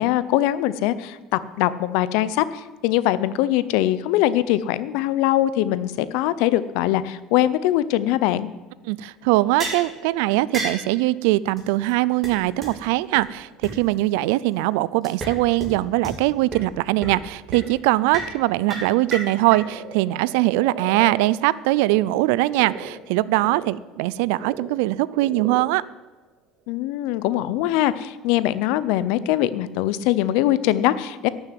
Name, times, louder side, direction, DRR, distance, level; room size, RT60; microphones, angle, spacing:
voice 1, 0.0-8.5 26.7-31.3, left 13 dB, 75° left, 16 dB, 0.7 m, -22 dB
voice 2, 8.9-25.8, right 18 dB, 85° right, 19 dB, 0.4 m, -21 dB
Frog, 9.2-22.0 22.4-27.0, right 4 dB, 65° right, 3.3 m, -42 dB
sound 1, 9.6-9.9 10.5-10.8 11.6-11.7 11.9-12.0 12.2-12.3 12.6-12.7 13.1-13.2 13.6-13.7 15.0-15.3 15.6-15.7 16.0-16.1 16.5-16.6 17.0-17.2 17.5-17.6 18.1-18.3 18.7-19.6, right 3 dB, 25° right, 3.2 m, -30 dB
12.0 x 6.8 x 9.3 m, 1.2 s
cardioid pair, 140°, 0 cm